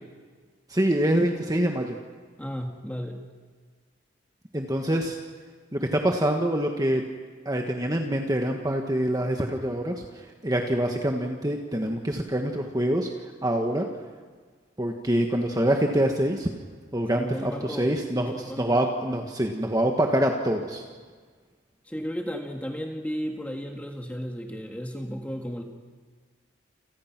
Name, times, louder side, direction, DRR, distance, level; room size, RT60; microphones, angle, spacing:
voice 1, 0.7-2.0 4.5-5.2 5.7-7.0 7.4-13.1 13.4-13.9 14.8-16.5 16.9-20.8, right 1 dB, 20° right, 2 dB, 1.5 m, -25 dB
voice 2, 2.4-3.2 17.2-18.0 18.3-18.8 21.9-25.6, equal, 10° left, 2 dB, 1.8 m, -34 dB
29.0 x 28.5 x 6.1 m, 1.6 s
head